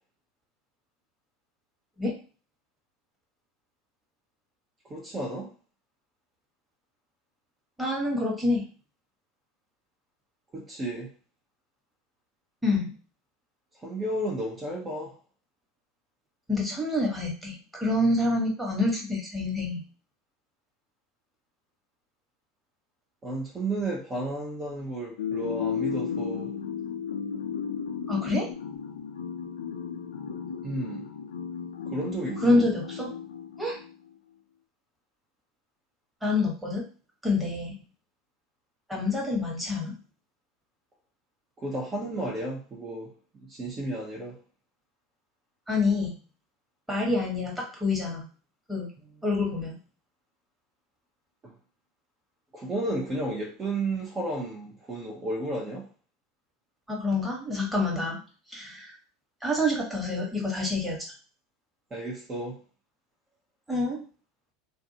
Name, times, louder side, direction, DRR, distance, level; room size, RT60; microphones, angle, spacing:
voice 1, 4.8-5.5 10.5-11.1 13.8-15.2 23.2-26.5 30.6-31.1 31.9-32.6 41.6-44.4 51.4-51.5 52.5-55.9 61.9-62.6, right 2 dB, 30° right, -3 dB, 0.7 m, -33 dB
voice 2, 7.8-8.6 12.6-12.9 16.5-19.8 28.1-28.5 32.4-33.1 33.6-33.8 36.2-36.8 37.2-37.8 38.9-39.9 45.7-46.1 46.9-48.3 48.7-48.9 49.2-49.7 56.9-58.2 58.5-58.9 59.4-61.1 63.7-64.0, left 2 dB, 5° right, -3 dB, 1.2 m, -27 dB
sound 1, 25.2-33.9, left 7 dB, 85° left, 0.5 m, -34 dB
2.6 x 2.3 x 2.7 m, 0.37 s
hypercardioid pair, 90°, 0 cm